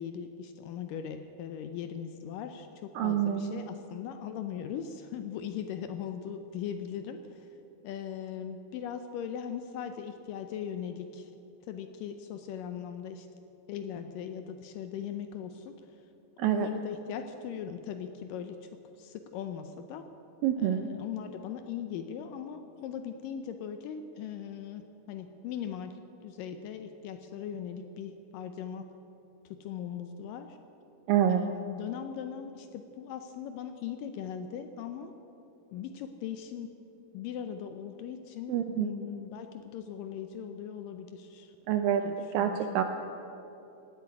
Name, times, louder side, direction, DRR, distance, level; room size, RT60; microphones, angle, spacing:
voice 1, 0.0-7.5 7.8-11.3 11.6-13.3 13.7-16.0 16.4-18.7 19.0-20.1 20.6-28.9 29.5-30.6 31.3-35.1 35.7-36.7 37.1-41.6 42.0-42.8, left 8 dB, 80° left, 8 dB, 2.0 m, -39 dB
voice 2, 3.0-3.7 16.4-16.7 20.4-20.9 31.1-31.4 38.5-38.9 41.7-42.0 42.3-42.8, right 10 dB, 80° right, 7 dB, 2.1 m, -27 dB
17.0 x 8.5 x 9.6 m, 2.9 s
omnidirectional pair, 4.6 m